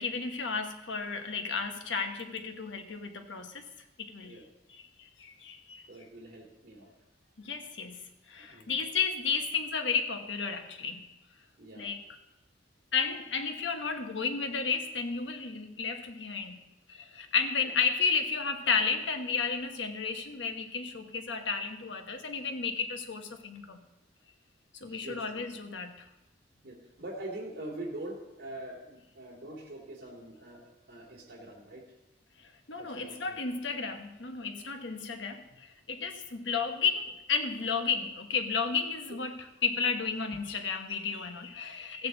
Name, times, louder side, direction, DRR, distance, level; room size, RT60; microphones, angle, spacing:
voice 1, 0.0-3.6 4.0-4.4 4.8-5.9 7.4-11.0 11.8-12.0 12.9-23.8 24.8-26.1 32.4-42.1, left 5 dB, 90° left, 5 dB, 1.2 m, -33 dB
voice 2, 5.9-6.9 8.4-8.8 11.6-11.9 24.9-25.6 26.6-31.8 32.8-33.4 39.1-39.2, right 1 dB, 55° right, -4 dB, 2.8 m, -44 dB
15.5 x 8.4 x 4.0 m, 0.98 s
head